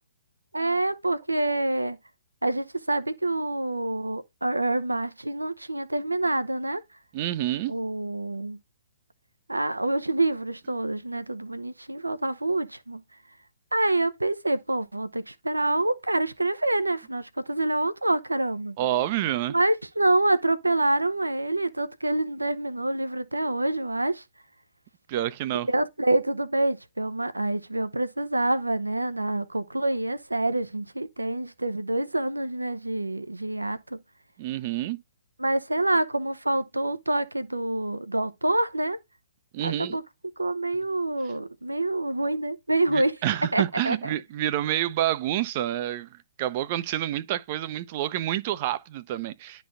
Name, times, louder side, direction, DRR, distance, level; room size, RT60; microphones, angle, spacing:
voice 1, 0.5-2.0 2.4-6.8 7.7-8.6 9.5-13.0 13.7-18.8 19.5-24.2 25.6-34.0 35.4-39.0 39.6-40.0 40.4-43.1 43.5-44.0, right 2 dB, 90° right, 0.7 m, -26 dB
voice 2, 7.1-7.8 18.8-19.6 25.1-25.7 34.4-35.0 39.5-40.0 42.9-49.6, right 13 dB, 40° right, 0.6 m, -28 dB
11.0 x 4.0 x 2.5 m
figure-of-eight pair, 125°, 0 cm